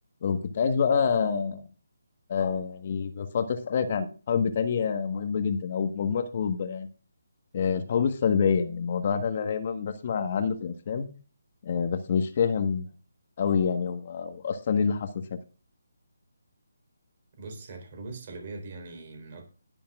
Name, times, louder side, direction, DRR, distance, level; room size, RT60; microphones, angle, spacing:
voice 1, 0.2-1.6 2.3-6.9 7.5-11.1 11.6-12.9 13.4-15.2, left 6 dB, 40° left, 8 dB, 1.4 m, -27 dB
voice 2, 17.4-19.4, right 3 dB, 40° right, 4 dB, 3.9 m, -41 dB
20.0 x 7.0 x 2.4 m, 0.36 s
figure-of-eight pair, 150°, 0 cm